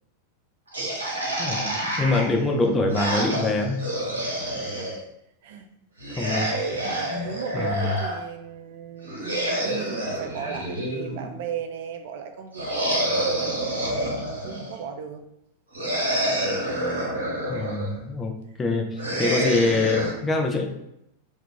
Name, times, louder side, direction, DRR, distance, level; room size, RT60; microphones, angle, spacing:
sound 1, 0.7-5.0 6.0-8.2 9.0-11.4 12.5-14.8 15.7-17.9 19.0-20.1, right 1 dB, 75° right, 0.8 m, -28 dB
voice 1, 1.4-1.7 2.0-3.8 6.1-6.5 7.1-7.3 7.5-8.0 17.5-20.6, left 3 dB, 15° left, 2 dB, 0.5 m, -24 dB
voice 2, 6.8-15.2 19.1-19.4, right 7 dB, 55° right, 5 dB, 0.3 m, -37 dB
2.3 x 2.2 x 3.8 m, 0.79 s
figure-of-eight pair, 90°, 0 cm